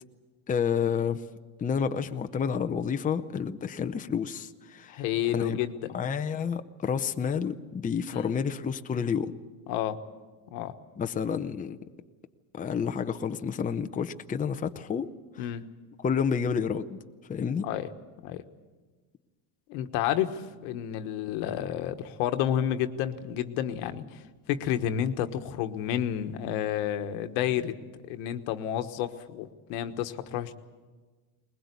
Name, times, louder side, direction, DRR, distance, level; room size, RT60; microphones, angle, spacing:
voice 1, 0.5-1.2 1.6-5.0 5.3-5.6 5.9-9.3 11.0-11.8 12.5-15.1 16.0-17.0 17.3-17.7, left 7 dB, 15° left, 7 dB, 0.7 m, -29 dB
voice 2, 4.9-6.0 8.1-8.3 9.7-10.0 10.5-10.7 15.4-15.7 17.6-17.9 18.2-18.4 19.7-27.8 28.1-30.5, left 10 dB, 85° left, 8 dB, 1.4 m, -30 dB
21.0 x 20.5 x 8.3 m, 1.4 s
cardioid pair, 130°, 46 cm